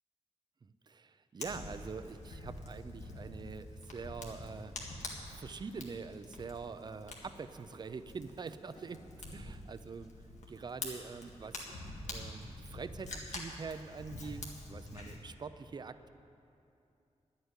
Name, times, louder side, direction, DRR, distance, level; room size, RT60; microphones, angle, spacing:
voice 1, 0.6-4.7 5.3-10.1 10.5-11.8 12.1-16.1, right 5 dB, 40° right, 12 dB, 0.4 m, -45 dB
Fire, 1.4-15.2, left 2 dB, 90° left, 1.8 m, -46 dB
11.0 x 8.0 x 9.7 m, 2.7 s
wide cardioid pair, 175°, 12 cm